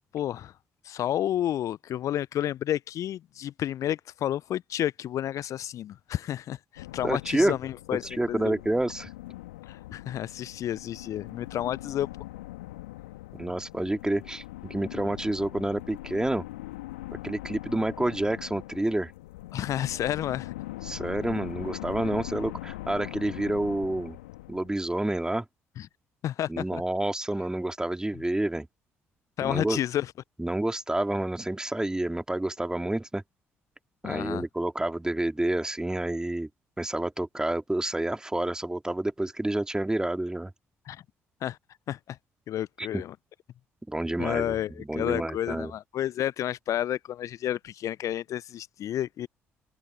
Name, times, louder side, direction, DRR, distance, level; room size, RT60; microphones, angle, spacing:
voice 1, 0.1-0.5 0.8-8.5 9.7-12.1 19.5-20.5 25.8-25.9 26.2-26.8 29.4-30.1 34.0-34.4 40.9-41.0 41.4-41.6 41.9-42.2 42.5-43.1 44.2-49.3, left 11 dB, 55° left, 0.7 m, -31 dB
sound 1, 6.8-25.2, left 18 dB, 75° left, 2.5 m, -41 dB
voice 2, 7.0-7.6 8.2-9.1 13.4-16.4 17.2-19.1 20.8-24.2 24.5-25.4 26.5-28.7 29.4-29.8 30.4-33.2 34.0-36.5 36.8-40.5 42.8-43.0 43.9-45.7, right 1 dB, 10° right, 2.5 m, -29 dB
figure-of-eight pair, 45°, 7 cm